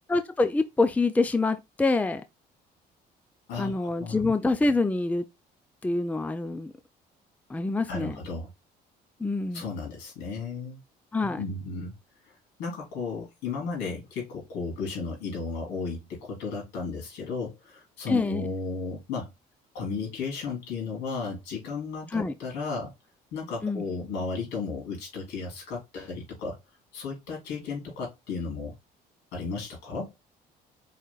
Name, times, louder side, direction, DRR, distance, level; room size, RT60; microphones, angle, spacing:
voice 1, 0.1-2.2 3.6-5.2 5.8-6.7 7.5-8.2 9.2-9.6 11.1-11.4 18.1-18.5 22.1-22.3 23.6-23.8, left 3 dB, 10° left, 0.5 m, -26 dB
voice 2, 3.5-4.2 7.9-8.5 9.5-10.8 11.4-12.0 12.3-19.3 19.7-22.9 23.3-26.6 26.9-28.7 29.3-30.1, left 4 dB, 85° left, 3.4 m, -34 dB
4.9 x 4.6 x 2.3 m
cardioid pair, 110°, 17 cm